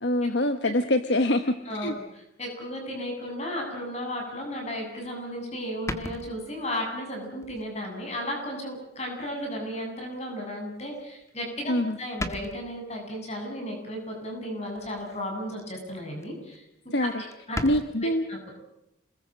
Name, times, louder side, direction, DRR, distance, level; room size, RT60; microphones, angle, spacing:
voice 1, 0.0-1.9 11.7-12.0 16.9-17.1 17.6-18.2, left 1 dB, 60° left, 9 dB, 1.2 m, -24 dB
voice 2, 1.6-16.6 17.0-17.6 18.0-18.4, equal, 35° left, 2 dB, 8.0 m, -34 dB
sound 1, 5.0-5.1 5.9-6.8 7.4-7.7 8.2-8.3 9.5-9.6 11.3-11.6 11.9-12.0 12.2-12.8 14.8-15.2 15.6-15.9 16.2-16.3 16.5-16.6 16.9-17.0 17.3-17.9, left 1 dB, 15° left, 1.6 m, -36 dB
27.5 x 21.5 x 7.7 m, 0.86 s
head